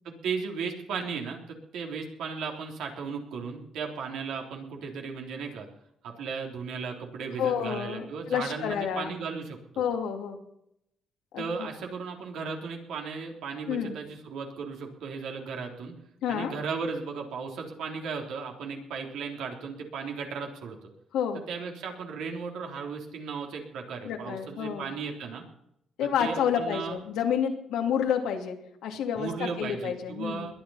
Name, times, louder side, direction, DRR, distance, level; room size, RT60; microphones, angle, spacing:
voice 1, 0.0-5.7 6.0-9.8 11.4-15.9 16.3-20.9 21.5-25.4 26.0-27.0 29.2-30.5, right 5 dB, 80° right, 1 dB, 3.5 m, -36 dB
voice 2, 7.4-9.1 9.8-10.4 11.3-11.7 13.7-14.0 16.2-16.5 21.1-21.4 24.0-24.9 26.0-28.6 28.8-30.5, left 8 dB, 90° left, 3 dB, 2.7 m, -29 dB
21.5 x 10.0 x 5.7 m, 0.77 s
cardioid pair, 90°, 0 cm